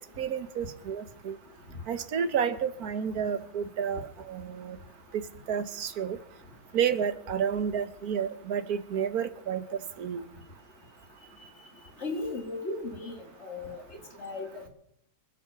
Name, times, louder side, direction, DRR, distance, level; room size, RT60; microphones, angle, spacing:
voice 1, 0.2-1.4 1.9-4.8 5.5-6.2 6.7-10.2, right 7 dB, 85° right, 13 dB, 1.5 m, -30 dB
voice 2, 12.0-13.8 14.2-14.7, left 2 dB, 45° left, 3 dB, 2.8 m, -36 dB
24.0 x 8.3 x 6.9 m, 0.76 s
omnidirectional pair, 1.6 m